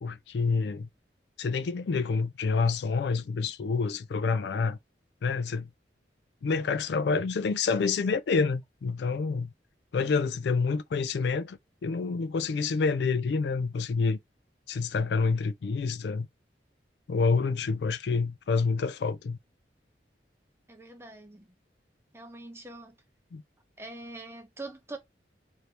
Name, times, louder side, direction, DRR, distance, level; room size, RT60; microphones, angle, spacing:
voice 1, 0.0-0.9 1.4-4.8 5.2-5.7 6.4-9.5 9.9-14.2 14.7-16.3 17.1-19.4 23.3-23.4, left 4 dB, 70° left, 0.4 m, -28 dB
voice 2, 20.7-21.5 22.1-23.0 23.8-25.0, right 2 dB, 15° right, 0.7 m, -43 dB
3.2 x 2.7 x 2.8 m
head